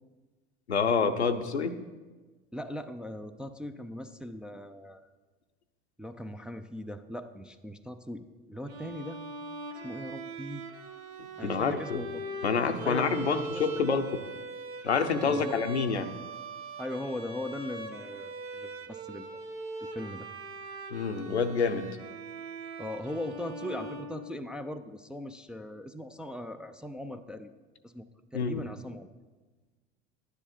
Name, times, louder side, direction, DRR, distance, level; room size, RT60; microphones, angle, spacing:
voice 1, 0.7-1.8 11.4-12.0 12.4-14.1 14.8-16.1 20.9-21.9 28.3-28.6, left 5 dB, 90° left, 7 dB, 0.7 m, -27 dB
voice 2, 2.5-5.1 6.0-9.3 9.8-10.7 11.4-12.2 12.8-13.8 15.2-15.6 16.8-19.3 19.8-20.3 22.8-27.5 27.8-28.1 28.3-29.1, left 1 dB, 5° right, 6 dB, 0.3 m, -39 dB
Bowed string instrument, 8.7-24.8, right 2 dB, 70° right, 1.4 m, -41 dB
11.5 x 9.8 x 4.3 m, 1.3 s
figure-of-eight pair, 75°, 32 cm